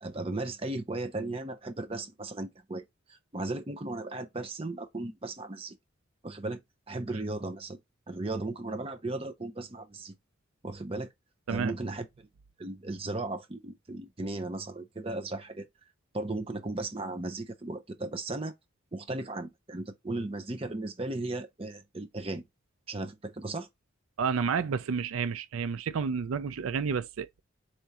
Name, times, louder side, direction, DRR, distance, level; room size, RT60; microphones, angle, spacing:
voice 1, 0.0-2.8 3.1-5.8 6.2-6.6 6.9-7.8 8.1-10.2 10.6-11.1 11.5-12.3 12.6-15.7 16.1-18.5 18.9-22.5 22.9-23.7, right 2 dB, 25° right, 0.6 m, -36 dB
voice 2, 24.2-27.4, right 6 dB, 85° right, 0.4 m, -30 dB
4.3 x 3.5 x 2.8 m
head